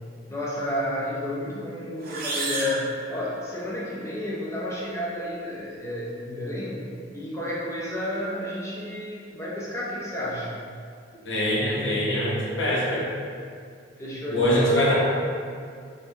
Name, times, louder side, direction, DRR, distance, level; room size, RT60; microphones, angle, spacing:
voice 1, 0.3-6.8 7.1-10.5 14.0-14.8, left 1 dB, 15° left, -6 dB, 0.6 m, -31 dB
sound 1, 2.0-3.8, right 2 dB, 45° right, 0.5 m, -32 dB
voice 2, 11.2-13.1 14.3-14.9, equal, 70° left, -6 dB, 1.0 m, -23 dB
4.0 x 2.7 x 3.5 m, 2.2 s
head